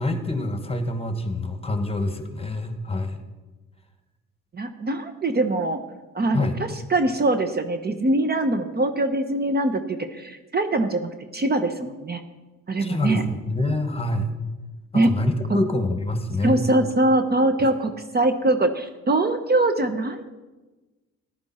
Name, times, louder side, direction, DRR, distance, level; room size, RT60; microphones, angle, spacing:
voice 1, 0.0-3.2 6.3-6.5 12.8-14.3 14.9-16.6, left 2 dB, 20° left, 7 dB, 1.5 m, -26 dB
voice 2, 4.5-5.8 6.1-12.2 12.7-13.2 14.9-15.1 15.5-15.6 16.4-20.3, right 2 dB, 35° right, 8 dB, 0.9 m, -23 dB
14.0 x 11.0 x 4.3 m, 1.2 s
cardioid pair, 90°, 30 cm